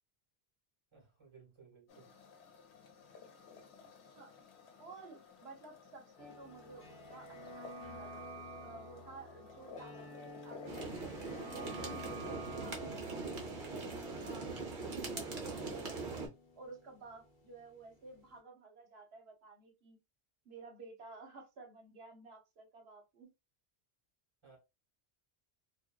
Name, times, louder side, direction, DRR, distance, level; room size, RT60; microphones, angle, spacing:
voice 1, 0.9-2.1 24.4-24.6, right 5 dB, 30° right, 1.1 m, -60 dB
sound 1, 1.9-11.8, left 5 dB, 90° left, 0.9 m, -56 dB
voice 2, 4.8-10.8 11.3-16.2 16.6-20.0 20.4-23.3, right 3 dB, 70° right, 1.0 m, -53 dB
sound 2, 6.2-17.9 18.1-18.2, equal, 55° left, 0.8 m, -50 dB
sound 3, 10.7-16.3, right 3 dB, 55° right, 0.9 m, -41 dB
2.5 x 2.2 x 2.2 m
omnidirectional pair, 1.1 m